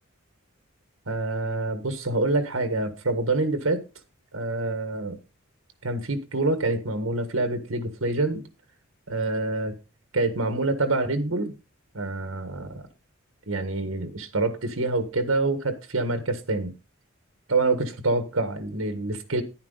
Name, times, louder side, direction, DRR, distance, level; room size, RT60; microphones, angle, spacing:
voice 1, 1.1-3.8 4.3-5.2 5.8-8.4 9.1-9.8 10.1-11.5 11.9-12.9 13.5-16.7 17.5-19.4, right 2 dB, 85° right, 1.5 m, -26 dB
10.5 x 10.0 x 3.9 m
head